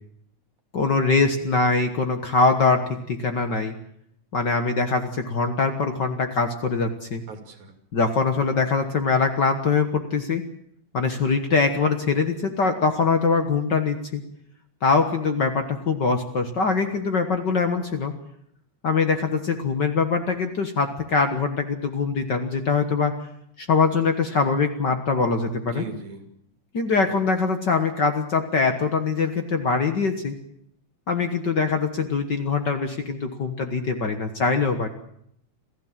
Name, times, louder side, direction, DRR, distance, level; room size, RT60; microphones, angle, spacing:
voice 1, 0.7-3.7 4.3-7.2 7.9-10.4 10.9-14.2 14.8-18.1 18.8-23.1 23.6-25.8 26.7-30.4 31.1-34.9, left 4 dB, 45° left, 6 dB, 1.6 m, -23 dB
voice 2, 7.3-7.7 25.6-26.3, right 3 dB, 80° right, 5 dB, 4.1 m, -38 dB
27.5 x 15.5 x 7.4 m, 0.72 s
omnidirectional pair, 3.3 m